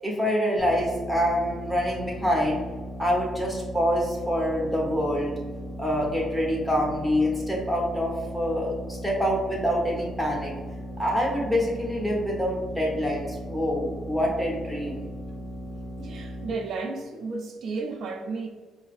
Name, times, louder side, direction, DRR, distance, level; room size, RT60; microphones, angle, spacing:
voice 1, 0.0-2.6 3.0-5.4 5.8-10.5 11.0-15.1, equal, ahead, -3 dB, 1.1 m, -26 dB
sound 1, 0.6-16.5, equal, 30° left, 0.5 m, -38 dB
voice 2, 16.0-18.5, right 4 dB, 65° right, 3 dB, 0.3 m, -33 dB
4.7 x 2.0 x 2.5 m, 1.4 s
cardioid pair, 90°, 0 cm